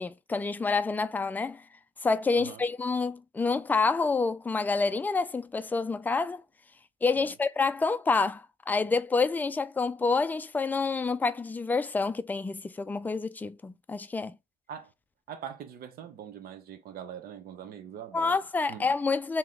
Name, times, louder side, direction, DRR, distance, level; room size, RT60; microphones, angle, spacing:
voice 1, 0.0-1.6 2.0-6.4 7.0-14.3 18.1-19.4, left 4 dB, 10° left, 0.3 m, -28 dB
voice 2, 15.3-18.4 18.7-18.8, right 8 dB, 65° right, 0.8 m, -42 dB
3.1 x 2.8 x 3.8 m
cardioid pair, 110°, 17 cm